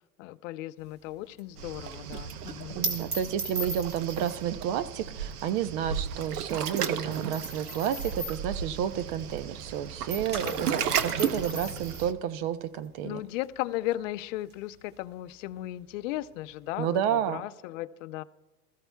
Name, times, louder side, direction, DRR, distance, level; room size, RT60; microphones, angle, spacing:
voice 1, 0.2-2.8 10.4-11.1 11.5-11.8 13.0-18.2, left 15 dB, 55° left, 14 dB, 0.6 m, -36 dB
sound 1, 0.8-9.7 10.0-17.2, right 2 dB, 20° right, 1.6 m, -40 dB
Waves surf, 1.6-12.1, right 8 dB, 85° right, 0.9 m, -34 dB
voice 2, 2.8-13.2 16.8-17.4, right 9 dB, 45° right, 13 dB, 0.7 m, -31 dB
20.5 x 14.0 x 2.3 m, 1.1 s
hypercardioid pair, 115°, 45 cm